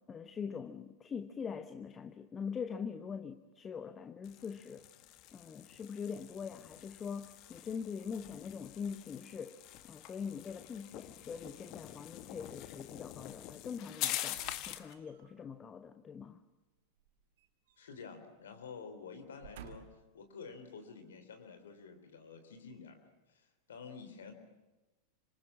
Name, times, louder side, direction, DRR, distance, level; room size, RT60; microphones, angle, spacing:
voice 1, 0.1-4.9 5.3-9.6 9.8-16.4, left 6 dB, 20° left, 1.1 m, -43 dB
sound 1, 4.2-14.9, left 14 dB, 40° left, 1.5 m, -45 dB
sound 2, 14.3-15.4 17.0-18.1 18.4-18.6 19.2-20.2 20.8-20.9, right 9 dB, 55° right, 2.1 m, -55 dB
voice 2, 17.8-19.9 20.1-23.0 23.3-24.3, left 5 dB, 65° left, 3.8 m, -49 dB
27.0 x 26.0 x 7.3 m
figure-of-eight pair, 90°, 0 cm